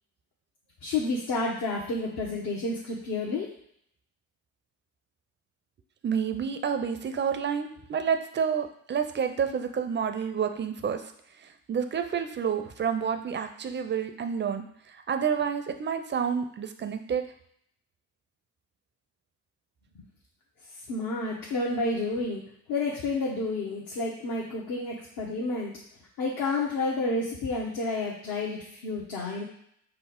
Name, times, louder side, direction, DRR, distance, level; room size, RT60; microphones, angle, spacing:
voice 1, 0.8-3.5 20.0-20.1 20.9-22.4 22.7-25.7 26.2-29.4, left 3 dB, 55° left, -4 dB, 1.0 m, -30 dB
voice 2, 6.0-11.0 11.7-14.6 15.1-17.2, right 7 dB, 25° right, 7 dB, 0.5 m, -29 dB
5.5 x 2.0 x 3.7 m, 0.69 s
figure-of-eight pair, 45°, 43 cm